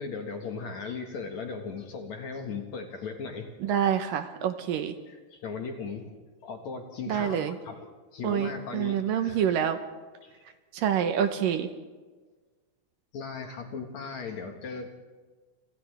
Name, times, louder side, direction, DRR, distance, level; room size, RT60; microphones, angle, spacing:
voice 1, 0.0-3.5 5.1-6.1 6.4-9.4 10.2-10.4 13.1-14.9, left 5 dB, 55° left, 3 dB, 2.5 m, -37 dB
voice 2, 3.6-4.9 7.1-7.6 8.2-9.8 10.7-11.7, right 9 dB, 70° right, 8 dB, 2.4 m, -27 dB
29.5 x 26.5 x 3.5 m, 1.4 s
omnidirectional pair, 4.5 m